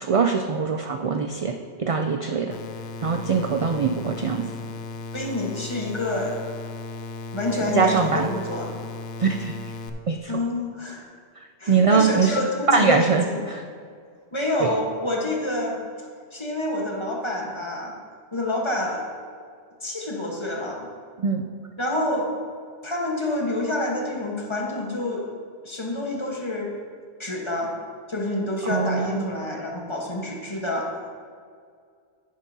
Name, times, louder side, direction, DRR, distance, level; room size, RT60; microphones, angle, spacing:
voice 1, 0.0-2.6 3.0-4.4 7.7-8.3 9.2-9.5 10.1-10.3 11.7-12.4 12.7-13.6 14.6-14.7 21.2-21.4 28.7-29.4, right 5 dB, 50° right, 4 dB, 0.4 m, -22 dB
sound 1, 2.5-9.9, left 3 dB, 85° left, 0.9 m, -36 dB
voice 2, 5.1-6.4 7.3-8.7 10.3-11.0 11.6-13.4 14.3-15.8 16.3-17.9 18.3-19.1 19.8-20.9 21.8-22.3 22.8-25.2 25.6-26.7 27.2-27.7 28.1-30.9, left 1 dB, 25° left, -1 dB, 1.3 m, -27 dB
10.5 x 9.7 x 2.8 m, 2.1 s
omnidirectional pair, 1.1 m